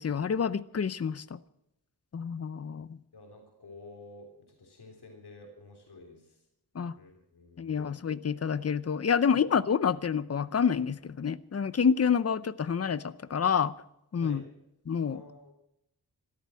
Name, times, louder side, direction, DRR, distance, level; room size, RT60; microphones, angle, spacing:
voice 1, 0.0-1.4 2.1-3.0 6.7-6.9 7.6-13.7 14.1-14.4 14.9-15.2, left 6 dB, 40° left, 17 dB, 0.6 m, -28 dB
voice 2, 3.1-4.3 4.6-6.4 7.0-7.9 14.2-14.4 15.0-15.5, left 2 dB, 80° left, 2 dB, 3.4 m, -50 dB
14.0 x 13.0 x 7.6 m, 0.83 s
wide cardioid pair, 110°, 39 cm